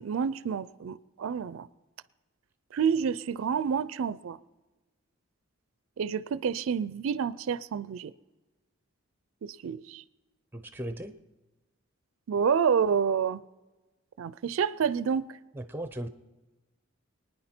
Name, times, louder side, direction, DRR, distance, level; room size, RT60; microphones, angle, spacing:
voice 1, 0.0-1.7 2.7-4.4 6.0-8.1 9.4-10.0 12.3-13.4 14.2-15.3, right 7 dB, 75° right, 17 dB, 0.4 m, -28 dB
voice 2, 10.5-11.1 15.5-16.1, right 1 dB, 10° right, 9 dB, 0.6 m, -37 dB
24.0 x 9.7 x 4.4 m, 1.2 s
head